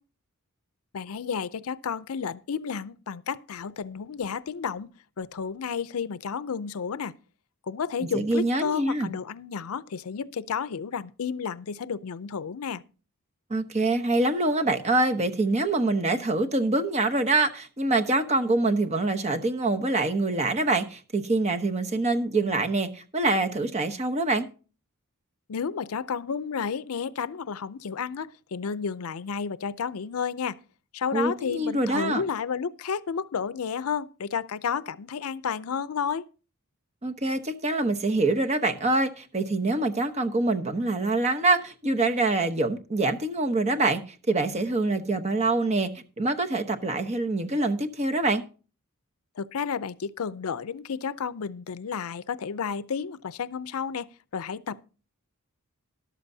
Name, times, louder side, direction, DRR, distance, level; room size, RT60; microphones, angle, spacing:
voice 1, 0.9-4.9 5.2-7.1 7.7-12.8 25.5-30.6 30.9-36.3 49.4-54.8, left 6 dB, 75° left, 0.5 m, -31 dB
voice 2, 8.0-9.1 13.5-24.5 31.1-32.2 37.0-44.0 44.3-45.9 46.2-48.4, right 2 dB, 30° right, 1.0 m, -25 dB
13.5 x 12.0 x 2.7 m
head